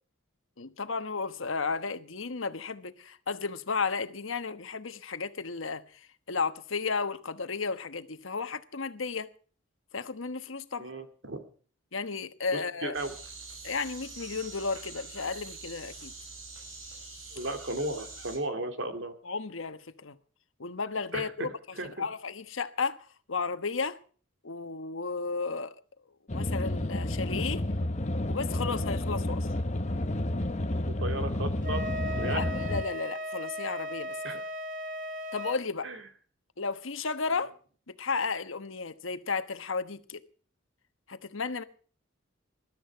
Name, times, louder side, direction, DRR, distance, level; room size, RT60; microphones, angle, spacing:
voice 1, 0.6-9.3 9.9-10.9 11.9-12.9 13.6-16.1 19.2-20.2 20.6-21.5 21.8-23.0 23.3-24.0 24.4-25.7 26.3-27.6 28.3-29.5 32.2-34.2 35.3-35.9 36.6-37.5 38.0-40.2 41.1-41.6, left 4 dB, 80° left, 1.2 m, -33 dB
voice 2, 10.8-11.4 12.5-13.1 17.3-19.2 21.1-21.5 21.8-22.0 30.9-31.8 32.2-32.4 34.2-34.4 35.8-36.0, right 2 dB, 65° right, 2.4 m, -35 dB
sound 1, 12.9-18.4, right 3 dB, 85° right, 6.6 m, -45 dB
sound 2, 26.3-32.8, left 1 dB, 35° left, 1.0 m, -30 dB
Wind instrument woodwind instrument, 31.6-35.6, equal, 40° right, 1.0 m, -37 dB
21.0 x 12.5 x 4.6 m
head